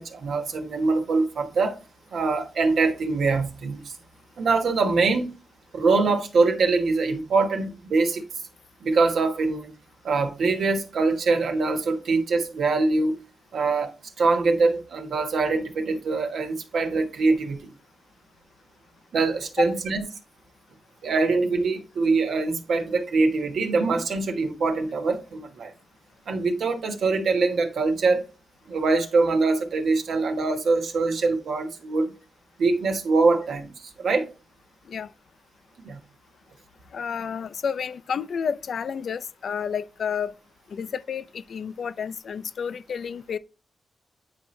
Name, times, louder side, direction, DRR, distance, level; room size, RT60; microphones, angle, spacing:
voice 1, 0.0-1.8 2.1-4.0 4.4-5.3 5.7-8.2 8.8-9.7 10.0-13.2 13.5-17.7 19.1-20.0 21.0-25.7 26.3-28.2 28.7-32.1 32.6-34.3 35.8-36.0, right 3 dB, 80° right, 1.2 m, -23 dB
voice 2, 36.9-40.3 40.7-43.4, left 7 dB, 70° left, 0.5 m, -30 dB
9.2 x 4.4 x 3.2 m
cardioid pair, 95°, 0 cm